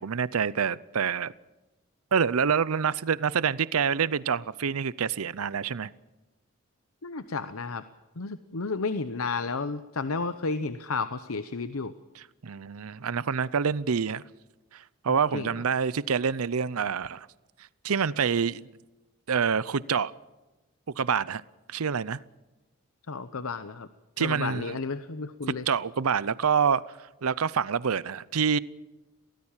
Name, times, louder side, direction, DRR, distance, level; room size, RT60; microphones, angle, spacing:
voice 1, 0.0-1.3 2.1-5.9 12.1-14.2 14.7-17.3 17.8-18.7 19.3-20.1 21.0-21.4 21.7-22.2 24.2-24.8 25.7-26.8 27.2-28.6, right 6 dB, 90° right, 0.6 m, -27 dB
voice 2, 7.0-7.8 8.2-11.9 15.3-15.5 23.1-23.9 24.2-25.6, left 4 dB, 80° left, 0.9 m, -32 dB
23.5 x 18.0 x 7.4 m
head